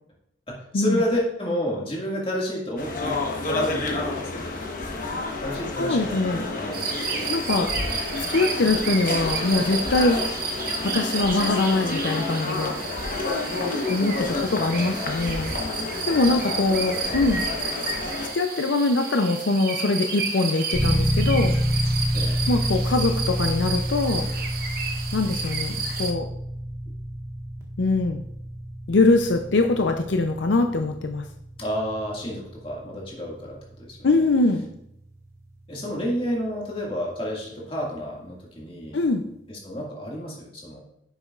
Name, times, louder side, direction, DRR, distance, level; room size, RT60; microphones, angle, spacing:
voice 1, 0.5-4.5 5.4-7.3 14.3-15.1 16.7-17.3 22.1-22.4 31.6-34.1 35.7-39.0 39.5-40.8, equal, 30° left, -3 dB, 2.0 m, -31 dB
sound 1, 2.8-18.3, left 3 dB, 45° left, 1.1 m, -30 dB
voice 2, 5.8-6.5 7.3-7.7 8.2-10.2 10.8-12.7 13.9-15.5 16.0-17.4 18.3-21.5 22.5-24.3 25.1-26.3 27.8-28.2 28.9-31.2 34.0-34.6 38.9-39.2, left 2 dB, 75° left, 5 dB, 0.6 m, -23 dB
sound 2, 6.7-26.1, right 4 dB, 50° right, 0.9 m, -32 dB
sound 3, 20.7-37.5, equal, 15° right, 1.5 m, -29 dB
9.6 x 6.9 x 2.4 m, 0.76 s
head